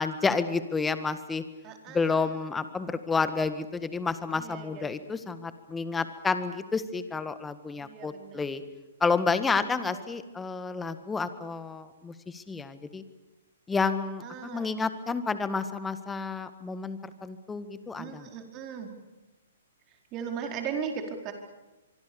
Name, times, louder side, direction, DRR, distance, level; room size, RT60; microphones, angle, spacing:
voice 1, 0.0-1.4 1.9-8.6 9.0-13.0 13.7-18.3, left 4 dB, 10° left, 11 dB, 1.7 m, -30 dB
voice 2, 1.6-2.3 4.3-5.0 7.8-8.5 9.5-10.0 14.2-14.7 18.0-18.9 20.1-21.3, right 7 dB, 30° right, 4 dB, 4.6 m, -38 dB
25.0 x 24.5 x 7.1 m, 1.1 s
hypercardioid pair, 125°, 0 cm